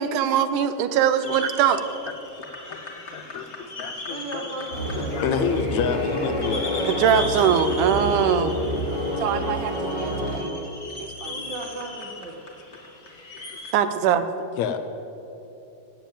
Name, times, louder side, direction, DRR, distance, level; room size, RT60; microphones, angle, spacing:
voice 1, 0.0-1.8 6.8-8.5 9.2-10.7 11.2-11.4 13.7-14.3, right 8 dB, 90° right, 10 dB, 2.3 m, -22 dB
sound 1, 1.2-13.7, left 2 dB, 30° left, 1.3 m, -38 dB
voice 2, 2.4-2.8 3.1-4.5 5.0-7.0 7.3-7.9 9.4-10.2 13.5-13.6 14.6-14.8, left 7 dB, 75° left, 8 dB, 1.8 m, -30 dB
voice 3, 4.1-5.2 9.3-9.5 11.2-12.4, right 2 dB, 50° right, 2 dB, 1.4 m, -36 dB
sound 2, 4.7-10.4, equal, 70° right, 4.3 m, -28 dB
16.0 x 7.2 x 8.8 m, 2.9 s
omnidirectional pair, 3.6 m